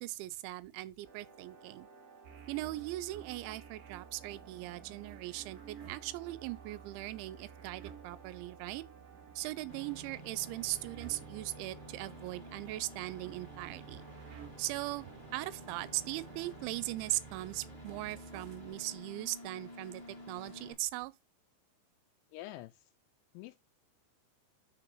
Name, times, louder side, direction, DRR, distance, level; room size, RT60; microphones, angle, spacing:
voice 1, 0.0-1.9 2.5-8.9 9.4-14.0 14.6-15.0 15.3-21.1, right 18 dB, 85° right, 2.9 m, -39 dB
sound 1, 1.0-16.6, right 4 dB, 45° right, 1.3 m, -57 dB
sound 2, 2.2-18.7, right 8 dB, 60° right, 2.3 m, -54 dB
sound 3, 9.7-20.7, equal, 60° left, 0.5 m, -51 dB
voice 2, 22.3-22.9 23.3-23.6, left 15 dB, 85° left, 2.9 m, -46 dB
6.4 x 3.9 x 4.5 m
omnidirectional pair, 5.4 m